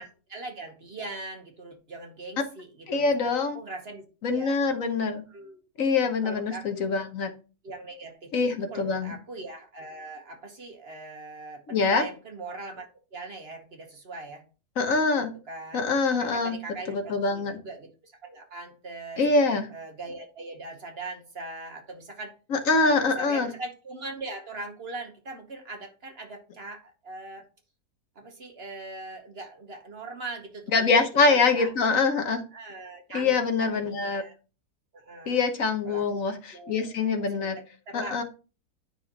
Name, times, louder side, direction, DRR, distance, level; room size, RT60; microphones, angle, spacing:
voice 1, 0.0-4.6 5.3-5.6 6.2-6.9 7.6-14.4 15.5-15.8 16.2-19.2 19.7-22.3 22.8-27.5 28.1-31.9 32.5-34.3 34.9-35.4 35.9-36.2 36.5-37.5 37.9-38.2, right 3 dB, 45° right, 4 dB, 1.3 m, -41 dB
voice 2, 2.9-3.6 4.2-5.2 5.8-7.3 8.3-9.1 11.7-12.0 14.8-15.3 15.7-16.6 16.9-17.6 19.2-19.6 22.5-23.5 30.7-32.4 33.1-34.2 35.3-37.6 37.9-38.2, left 4 dB, 60° left, 6 dB, 1.4 m, -24 dB
9.8 x 5.7 x 2.9 m, 0.34 s
omnidirectional pair, 1.6 m